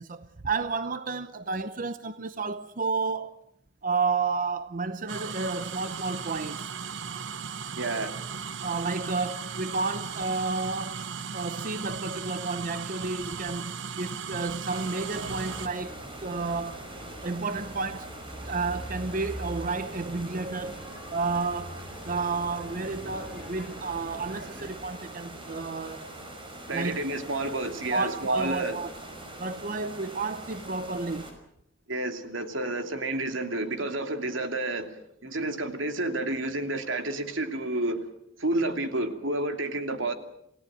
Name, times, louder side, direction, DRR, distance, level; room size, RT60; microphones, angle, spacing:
voice 1, 0.0-3.4 3.8-6.7 8.6-11.0 11.3-16.8 17.2-18.1 18.4-20.9 21.1-26.1 26.7-27.0 27.9-28.9 29.4-31.3, right 4 dB, 45° right, 0.8 m, -31 dB
sound 1, 5.1-15.7, right 6 dB, 70° right, 1.0 m, -37 dB
voice 2, 7.7-8.2 26.7-28.8 31.9-38.0 38.4-40.1, right 2 dB, 85° right, 2.8 m, -30 dB
sound 2, 14.7-31.3, right 1 dB, 25° right, 5.4 m, -43 dB
sound 3, 15.1-24.7, equal, 5° right, 7.5 m, -43 dB
28.5 x 17.0 x 7.7 m
head